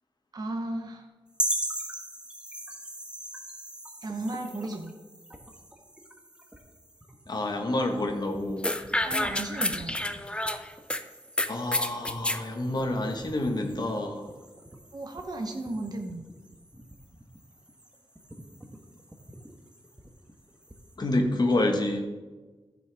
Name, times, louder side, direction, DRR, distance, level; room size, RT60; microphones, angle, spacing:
voice 1, 0.3-1.1 4.0-4.9 9.0-10.0 14.9-16.3, right 2 dB, 40° right, 2 dB, 0.8 m, -34 dB
sound 1, 1.3-20.9, right 1 dB, 10° right, 1.2 m, -41 dB
voice 2, 7.3-8.6 11.5-14.2 21.0-22.1, left 1 dB, 45° left, 3 dB, 1.4 m, -28 dB
sound 2, 8.6-11.0 11.4-12.4, left 1 dB, 10° left, 0.5 m, -29 dB
14.5 x 6.2 x 3.5 m, 1.3 s
wide cardioid pair, 110°, 10 cm